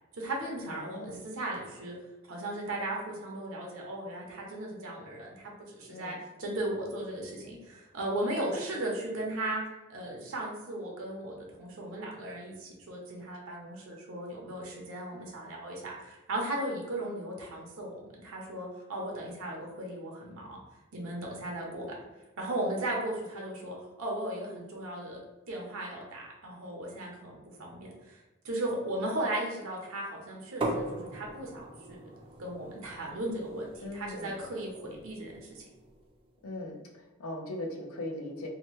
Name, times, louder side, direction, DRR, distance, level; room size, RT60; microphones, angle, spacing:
voice 1, 0.2-1.9 2.3-9.6 9.9-20.6 20.9-21.8 22.4-25.2 25.5-28.2 28.4-32.1 32.4-35.6, right 1 dB, 70° right, -1 dB, 0.7 m, -36 dB
voice 2, 0.7-1.3 5.9-6.2 33.8-34.4 36.4-38.5, left 1 dB, 85° left, 1 dB, 0.6 m, -39 dB
sound 1, 30.6-36.3, right 1 dB, 25° right, 0.4 m, -40 dB
2.8 x 2.2 x 3.0 m, 1.1 s
head